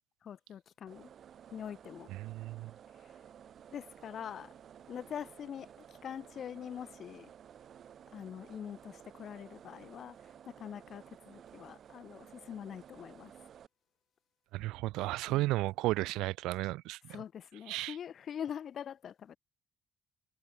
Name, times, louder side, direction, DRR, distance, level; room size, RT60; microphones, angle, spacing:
voice 1, 0.2-1.1 1.5-2.1 3.0-3.1 3.7-4.5 4.9-7.3 8.1-10.2 10.5-13.3 15.2-15.5 17.1-19.4, left 8 dB, 50° left, 3.7 m, -44 dB
sound 1, 0.9-13.7, right 9 dB, 55° right, 4.5 m, -55 dB
voice 2, 2.1-2.7 14.5-17.2 17.7-18.0, right 18 dB, 85° right, 1.0 m, -34 dB
cardioid pair, 100°, 0 cm